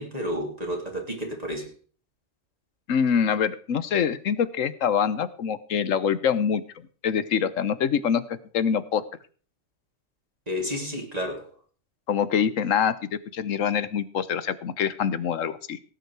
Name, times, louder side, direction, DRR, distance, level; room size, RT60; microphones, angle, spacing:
voice 1, 0.0-1.7 10.5-11.5, equal, 30° right, 0 dB, 3.1 m, -31 dB
voice 2, 2.9-6.6 7.0-9.0 12.1-13.0 13.3-15.9, left 7 dB, 85° left, 15 dB, 1.3 m, -25 dB
17.5 x 9.5 x 4.7 m, 0.42 s
omnidirectional pair, 1.3 m